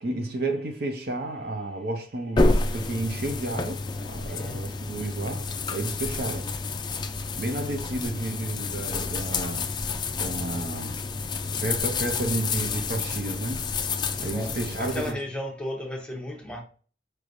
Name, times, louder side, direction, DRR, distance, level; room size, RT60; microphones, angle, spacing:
voice 1, 0.0-6.5 7.4-9.7 10.2-11.1 11.6-13.8 14.2-15.2, right 2 dB, 55° right, 0.7 m, -32 dB
sound 1, 2.4-15.1, left 3 dB, 25° left, 0.3 m, -29 dB
voice 2, 4.2-4.6 14.2-16.6, left 1 dB, 5° left, 0.8 m, -34 dB
4.6 x 3.2 x 2.6 m
head